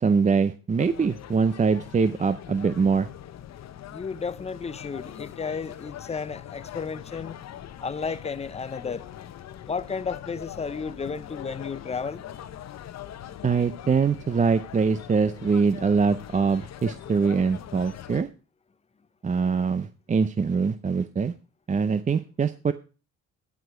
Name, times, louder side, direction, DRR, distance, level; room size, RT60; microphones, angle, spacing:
voice 1, 0.0-3.1 13.4-18.3 19.2-21.3 21.7-22.7, right 5 dB, 25° right, 0.5 m, -23 dB
sound 1, 0.8-18.2, left 11 dB, 60° left, 0.8 m, -42 dB
voice 2, 3.9-7.4 7.8-9.1 9.7-12.2, left 5 dB, 20° left, 0.6 m, -33 dB
12.5 x 4.9 x 4.9 m
cardioid pair, 90°, 30 cm